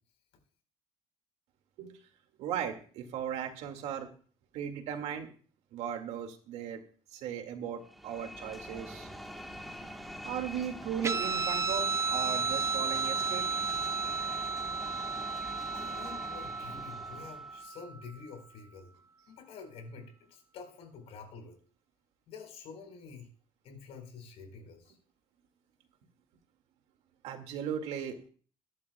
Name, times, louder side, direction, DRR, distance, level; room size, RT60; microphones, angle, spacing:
voice 1, 2.4-4.1 4.5-5.3 5.7-6.8 7.1-9.1 10.2-13.5 27.2-28.3, right 8 dB, 80° right, 5 dB, 2.2 m, -37 dB
sound 1, 7.8-17.7, equal, ahead, 1.4 m, -45 dB
Guitar, 11.0-18.0, right 4 dB, 25° right, 0.5 m, -33 dB
voice 2, 15.7-18.9 19.3-21.6 22.3-23.3 23.6-25.0, left 5 dB, 70° left, 4 dB, 4.5 m, -48 dB
22.0 x 11.0 x 2.3 m, 0.42 s
cardioid pair, 140°, 11 cm